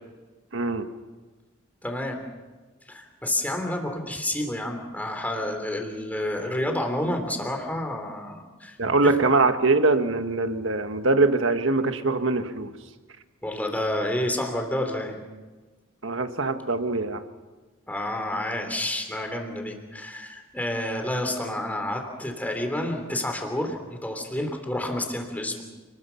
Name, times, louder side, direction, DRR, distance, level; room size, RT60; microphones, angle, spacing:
voice 1, 0.5-0.9 8.8-12.7 16.0-17.2, right 3 dB, 70° right, 8 dB, 1.6 m, -23 dB
voice 2, 1.8-2.2 2.9-8.8 13.4-15.2 17.9-25.6, left 1 dB, 10° left, 3 dB, 3.3 m, -29 dB
29.0 x 20.5 x 5.8 m, 1.3 s
head